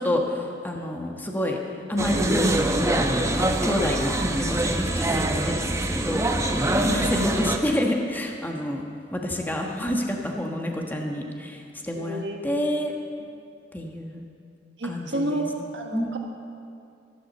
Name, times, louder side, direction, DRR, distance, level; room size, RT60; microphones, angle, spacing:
voice 1, 0.0-1.6 1.9-6.2 6.8-8.8 9.1-12.9 13.7-14.2 14.8-15.5 15.9-16.1, left 1 dB, 10° left, 1 dB, 1.3 m, -28 dB
sound 1, 2.0-7.6, right 1 dB, 15° right, 0.8 m, -24 dB
voice 2, 6.9-7.3 11.9-12.4 14.8-16.2, right 1 dB, 75° right, 2 dB, 1.4 m, -30 dB
12.5 x 11.5 x 6.7 m, 2.5 s
head